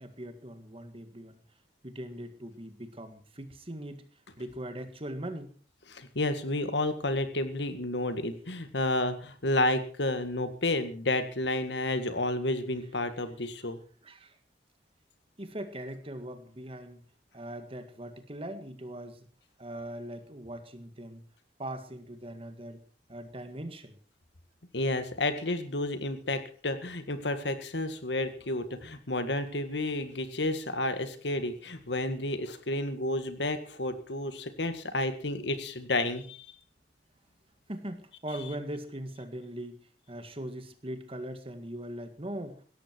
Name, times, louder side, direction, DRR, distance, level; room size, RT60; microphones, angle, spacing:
voice 1, 0.0-1.4 1.8-4.1 4.4-5.5 14.0-14.4 15.4-17.0 17.3-19.2 19.6-21.2 21.6-22.8 23.1-24.0 37.7-39.8 40.1-42.6, right 1 dB, 30° right, 9 dB, 1.8 m, -40 dB
voice 2, 5.9-13.8 24.7-36.4, left 2 dB, 70° left, 9 dB, 1.9 m, -31 dB
17.0 x 13.5 x 4.6 m, 0.42 s
head